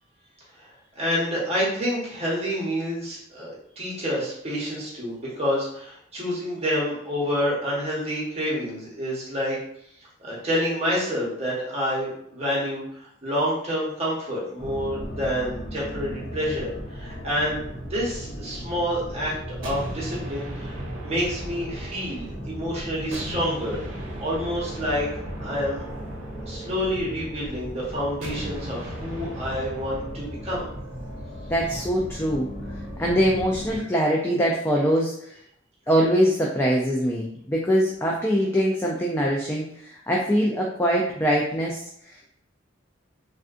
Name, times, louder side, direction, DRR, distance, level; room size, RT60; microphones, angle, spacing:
voice 1, 0.6-9.6 10.2-17.6 17.9-20.8 21.0-23.8 24.2-25.1 25.4-25.8 26.5-30.7, equal, 30° right, -5 dB, 1.0 m, -28 dB
sound 1, 14.6-33.8, equal, 45° left, 0.9 m, -37 dB
sound 2, 19.6-22.6 23.1-27.4 28.2-30.3, right 1 dB, 70° right, 0.8 m, -38 dB
voice 2, 31.5-32.5 33.0-35.3 35.9-42.2, equal, 10° left, -2 dB, 0.3 m, -23 dB
3.4 x 2.5 x 2.4 m, 0.70 s
head